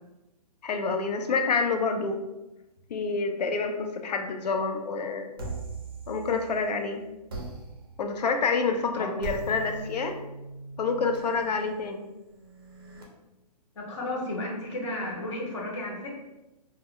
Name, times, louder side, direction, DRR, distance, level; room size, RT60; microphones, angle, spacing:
voice 1, 0.6-2.2 2.9-5.3 6.1-7.0 8.0-10.2 10.8-12.0, left 4 dB, 80° left, 5 dB, 0.5 m, -28 dB
sound 1, 5.4-6.7 7.3-13.0, right 3 dB, 35° right, 0.5 m, -41 dB
voice 2, 13.8-16.1, left 1 dB, 45° left, -2 dB, 0.7 m, -33 dB
2.1 x 2.0 x 3.7 m, 0.98 s
hypercardioid pair, 180°, 21 cm